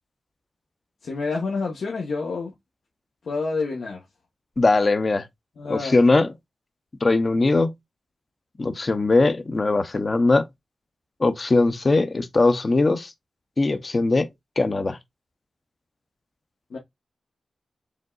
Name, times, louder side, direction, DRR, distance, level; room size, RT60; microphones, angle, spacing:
voice 1, 1.0-2.5 3.2-4.0 5.6-6.0 16.7-16.8, left 4 dB, 85° left, 1.3 m, -28 dB
voice 2, 4.6-5.3 5.7-6.3 7.0-7.7 8.6-10.5 11.2-13.1 13.6-14.3 14.6-15.0, left 3 dB, 40° left, 0.7 m, -20 dB
5.1 x 3.7 x 2.4 m
wide cardioid pair, 95°, 0 cm